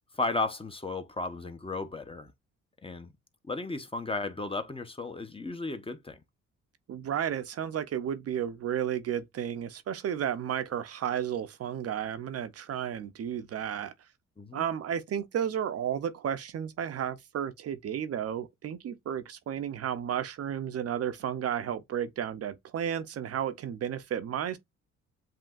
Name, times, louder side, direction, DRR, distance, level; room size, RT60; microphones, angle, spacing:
voice 1, 0.1-2.3 2.8-3.1 3.5-6.2 14.4-14.6, left 3 dB, 20° left, 0.8 m, -34 dB
voice 2, 6.9-13.9 14.5-24.6, right 9 dB, 55° right, 0.6 m, -33 dB
7.5 x 2.8 x 2.4 m
cardioid pair, 90°, 30 cm